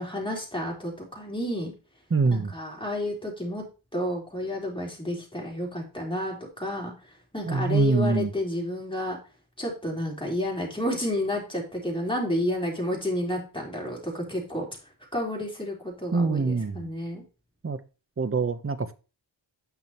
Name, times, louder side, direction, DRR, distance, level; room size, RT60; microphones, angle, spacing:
voice 1, 0.0-1.7 2.3-3.6 3.9-6.9 7.3-9.2 9.6-14.7 15.1-17.2, left 1 dB, 10° left, -2 dB, 3.8 m, -30 dB
voice 2, 2.1-2.5 7.5-8.3 16.1-16.9 17.6-17.8 18.2-18.9, right 4 dB, 30° right, 13 dB, 0.8 m, -24 dB
9.0 x 6.1 x 3.0 m, 0.32 s
cardioid pair, 55°, 48 cm